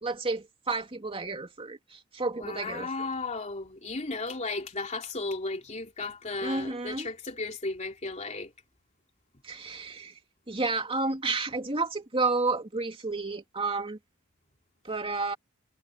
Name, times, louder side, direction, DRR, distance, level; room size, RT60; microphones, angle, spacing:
voice 1, 0.0-2.9 6.4-7.1 9.4-10.2 10.5-14.0 14.8-15.4, right 3 dB, 25° right, 2.9 m, -31 dB
voice 2, 2.4-8.5, left 3 dB, 30° left, 3.2 m, -35 dB
head